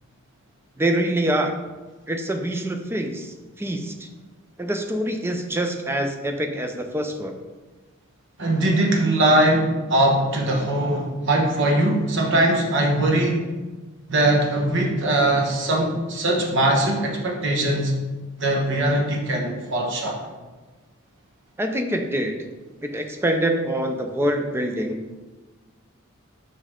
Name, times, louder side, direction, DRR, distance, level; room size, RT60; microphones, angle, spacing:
voice 1, 0.8-1.5 2.1-4.1 4.6-7.3 21.6-22.3 22.8-25.1, right 1 dB, 10° right, 5 dB, 0.4 m, -25 dB
voice 2, 8.4-13.5 14.1-17.9 18.4-20.2, right 1 dB, 55° right, 0 dB, 1.1 m, -21 dB
5.4 x 5.3 x 3.6 m, 1.3 s
head